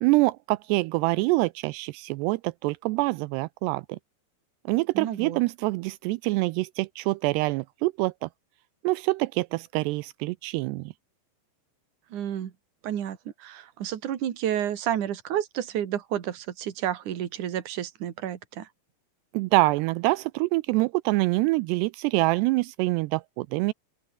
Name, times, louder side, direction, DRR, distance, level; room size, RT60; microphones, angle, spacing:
voice 1, 0.0-4.0 4.7-8.3 8.8-10.9 19.3-23.7, right 22 dB, 85° right, 2.4 m, -25 dB
voice 2, 4.9-5.4 12.1-12.5 12.8-18.7, right 10 dB, 50° right, 2.9 m, -30 dB
open air
omnidirectional pair, 5.3 m